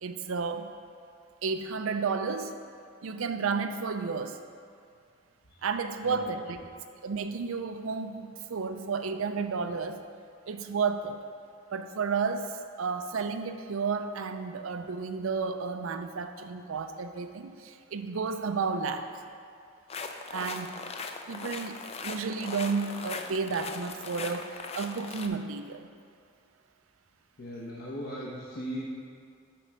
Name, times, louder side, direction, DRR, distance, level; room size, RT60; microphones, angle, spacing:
voice 1, 0.0-0.7 1.4-2.5 3.0-4.4 5.6-6.6 7.0-10.0 10.5-11.2 11.7-12.5 12.8-19.2 20.3-20.7 21.3-25.9, right 5 dB, 75° right, 8 dB, 0.5 m, -32 dB
voice 2, 6.0-6.5 27.4-28.8, equal, 50° left, -7 dB, 1.0 m, -38 dB
sound 1, 19.9-25.3, left 4 dB, 30° left, 0.4 m, -39 dB
7.7 x 4.6 x 5.2 m, 2.3 s
head